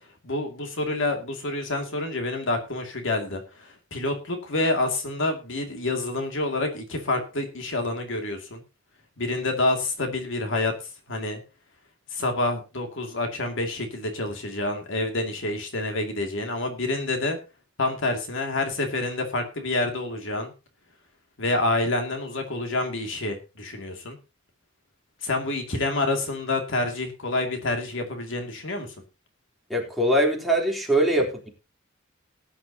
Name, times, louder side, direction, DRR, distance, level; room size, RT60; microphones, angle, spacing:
voice 1, 0.2-8.6 9.2-10.7 11.1-11.4 12.1-17.4 17.8-20.5 21.4-24.2 25.2-28.9, left 2 dB, 65° left, 4 dB, 2.5 m, -28 dB
voice 2, 29.7-31.5, right 1 dB, ahead, -1 dB, 3.5 m, -22 dB
19.0 x 10.0 x 2.9 m, 0.29 s
head